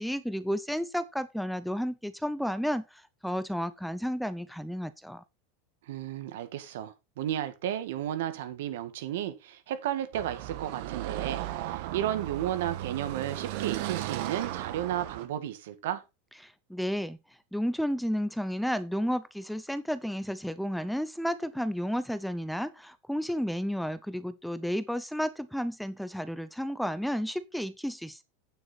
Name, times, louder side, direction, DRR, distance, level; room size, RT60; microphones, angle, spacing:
voice 1, 0.0-5.2 16.4-17.2 17.5-28.2, equal, ahead, 0.5 m, -32 dB
voice 2, 5.9-16.0, right 11 dB, 75° right, 1.9 m, -33 dB
Car passing by / Traffic noise roadway noise, 10.1-15.3, right 14 dB, 55° right, 1.4 m, -36 dB
9.1 x 7.5 x 4.1 m
supercardioid pair, 155°, 0 cm